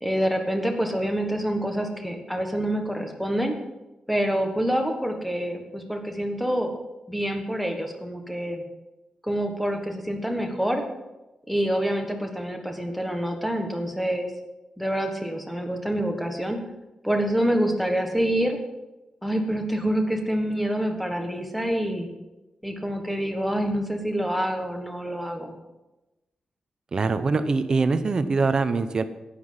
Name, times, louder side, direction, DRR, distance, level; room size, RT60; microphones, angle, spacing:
voice 1, 0.0-3.6 4.1-6.7 7.1-8.6 9.2-10.8 11.5-14.3 14.8-16.6 17.0-18.6 19.2-22.1 22.6-25.5, equal, ahead, 3 dB, 1.4 m, -26 dB
voice 2, 26.9-29.0, right 4 dB, 35° right, 10 dB, 0.8 m, -23 dB
11.5 x 10.0 x 5.7 m, 1.0 s
wide cardioid pair, 175°, 2 cm